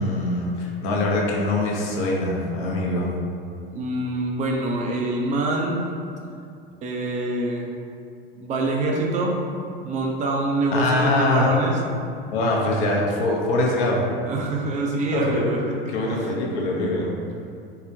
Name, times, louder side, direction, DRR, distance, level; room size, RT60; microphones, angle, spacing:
voice 1, 0.0-3.1 10.7-11.5 12.3-14.1 15.1-15.5 15.9-17.2, left 2 dB, 55° left, -2 dB, 0.7 m, -23 dB
voice 2, 3.7-5.8 6.8-7.7 8.4-9.4 9.8-11.8 14.2-15.8 16.1-16.3, right 2 dB, 25° right, 0 dB, 0.4 m, -25 dB
3.7 x 2.1 x 2.7 m, 2.5 s
hypercardioid pair, 85°, 29 cm